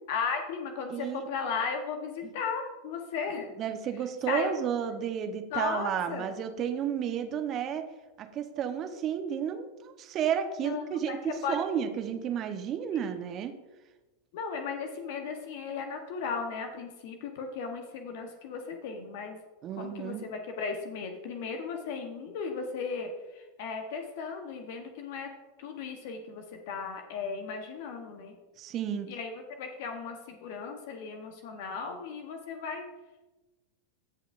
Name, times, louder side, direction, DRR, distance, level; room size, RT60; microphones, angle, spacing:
voice 1, 0.1-3.5 4.3-4.6 5.5-6.3 10.6-11.6 14.3-19.4 19.8-25.3 25.6-28.4 29.1-32.8, left 5 dB, 55° left, 5 dB, 1.1 m, -36 dB
voice 2, 0.9-1.3 2.2-2.3 3.6-7.9 8.2-13.5 19.6-20.2 28.6-29.1, right 8 dB, 35° right, 7 dB, 1.0 m, -32 dB
16.0 x 5.6 x 2.6 m, 1.1 s
figure-of-eight pair, 90°, 0 cm